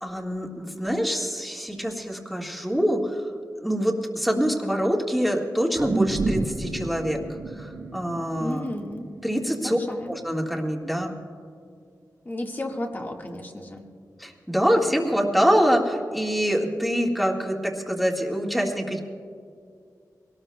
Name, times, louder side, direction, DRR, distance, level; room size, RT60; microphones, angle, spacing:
voice 1, 0.0-3.3 3.6-7.2 7.5-8.7 9.2-9.8 10.1-11.1 14.2-19.0, equal, ahead, 0 dB, 1.7 m, -25 dB
sound 1, 5.7-10.2 10.7-10.8, right 2 dB, 60° right, 1.2 m, -31 dB
voice 2, 8.4-9.1 9.6-10.2 12.2-13.8, left 1 dB, 30° left, 1 dB, 1.6 m, -33 dB
23.0 x 18.5 x 2.2 m, 2.3 s
wide cardioid pair, 110°, 6 cm